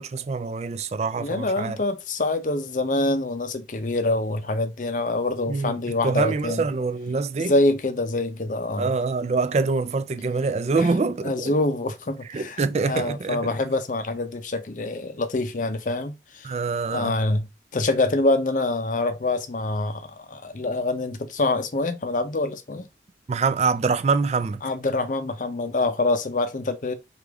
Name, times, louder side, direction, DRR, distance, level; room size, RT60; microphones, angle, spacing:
voice 1, 0.0-1.8 5.5-7.5 8.8-11.5 12.3-13.4 16.4-17.2 23.3-24.6, right 4 dB, 40° right, 0.4 m, -25 dB
voice 2, 1.2-6.7 7.4-8.9 10.8-10.9 11.2-16.5 16.9-22.9 24.6-26.9, left 2 dB, 45° left, 0.6 m, -25 dB
4.9 x 2.5 x 3.4 m
head